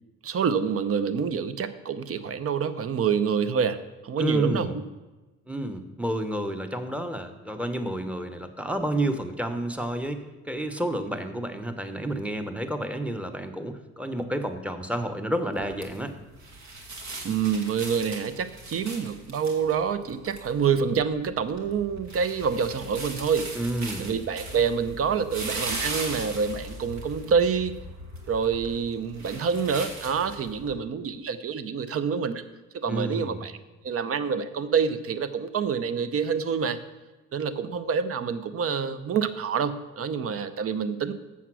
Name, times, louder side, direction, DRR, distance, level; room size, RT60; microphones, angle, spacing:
voice 1, 0.2-3.8 4.0-4.7 17.2-23.5 24.0-27.7 28.3-32.4 32.7-33.5 33.8-36.8 37.3-41.1, right 6 dB, 50° right, 13 dB, 0.7 m, -27 dB
voice 2, 4.2-4.8 5.5-16.1 23.5-24.1 32.9-33.5, right 1 dB, 5° right, 8 dB, 0.9 m, -30 dB
sound 1, 15.5-30.7, right 2 dB, 65° right, 1.8 m, -39 dB
7.3 x 7.1 x 6.1 m, 1.1 s
cardioid pair, 90°, 30 cm